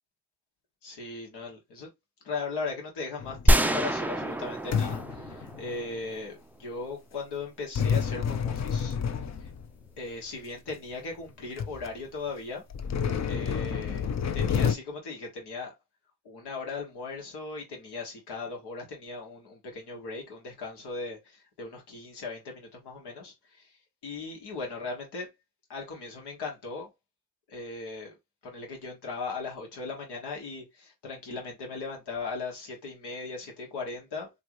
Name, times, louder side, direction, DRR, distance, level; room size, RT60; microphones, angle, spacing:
voice 1, 0.8-1.9 2.2-9.0 9.4-9.5 10.0-12.6 13.2-15.7 16.2-23.8 24.0-25.3 25.7-26.9 27.5-28.2 28.4-34.3, left 4 dB, 85° left, 1.3 m, -38 dB
sound 1, 3.2-3.8 4.7-6.0 7.8-9.9 10.7-10.8 11.3-11.4 11.6-11.9 12.7-14.8, left 7 dB, 45° left, 0.5 m, -29 dB
sound 2, 3.5-6.4, right 1 dB, 5° right, 0.4 m, -26 dB
3.0 x 2.5 x 2.9 m
supercardioid pair, 40°, 39 cm